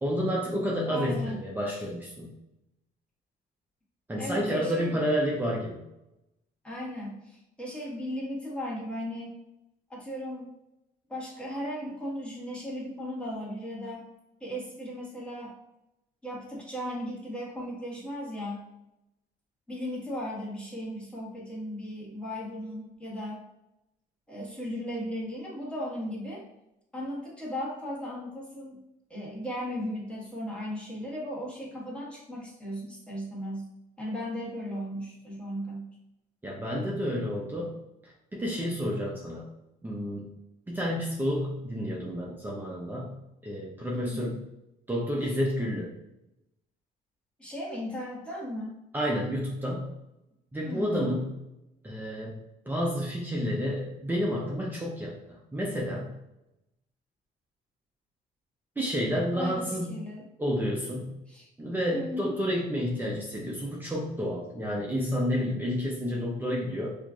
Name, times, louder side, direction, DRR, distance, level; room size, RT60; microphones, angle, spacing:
voice 1, 0.0-2.3 4.1-5.8 36.4-39.5 39.8-40.3 40.7-43.2 43.4-44.4 44.9-45.9 48.9-49.9 50.5-51.3 51.8-52.4 52.7-56.2 58.8-59.9 60.4-61.1 61.6-67.0, equal, 10° right, -4 dB, 0.6 m, -30 dB
voice 2, 0.9-1.4 4.2-5.0 6.6-9.4 9.9-10.5 11.1-14.1 14.4-15.6 16.2-18.6 19.7-23.4 24.3-26.4 26.9-28.8 29.1-33.7 34.0-35.9 43.9-44.4 45.2-45.4 47.4-48.8 50.7-51.1 59.4-60.2 61.3-61.5 61.9-62.3, equal, 5° left, -6 dB, 1.3 m, -36 dB
4.3 x 2.5 x 2.4 m, 0.91 s
cardioid pair, 110°, 17 cm